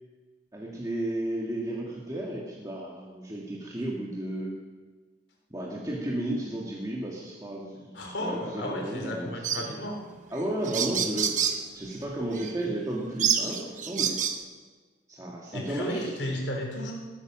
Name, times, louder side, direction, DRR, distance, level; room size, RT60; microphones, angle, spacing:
voice 1, 0.5-4.5 5.5-9.8 10.3-11.4 11.7-14.2 15.1-16.1, right 1 dB, 20° right, -3 dB, 1.8 m, -33 dB
voice 2, 7.9-10.0 15.5-16.9, equal, 70° left, 0 dB, 3.6 m, -33 dB
sound 1, 9.4-9.7 10.4-10.5 10.6-11.6 12.3-12.5 13.2-14.4, right 8 dB, 40° right, 1.0 m, -27 dB
20.0 x 9.7 x 6.2 m, 1.4 s
head